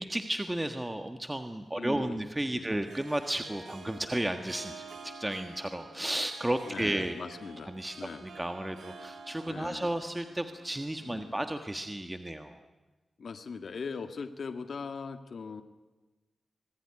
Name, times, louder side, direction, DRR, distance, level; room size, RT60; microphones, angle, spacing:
voice 1, 0.0-7.1 7.7-7.9 8.2-12.6, right 1 dB, 15° right, 7 dB, 1.5 m, -33 dB
Harp, 1.5-11.9, right 4 dB, 80° right, 4.5 m, -49 dB
voice 2, 1.8-2.2 2.5-2.7 6.7-8.3 9.5-10.0 11.0-11.4 13.2-15.6, left 5 dB, 65° left, 8 dB, 1.9 m, -40 dB
26.0 x 20.0 x 9.9 m, 1.2 s
wide cardioid pair, 95°, 0 cm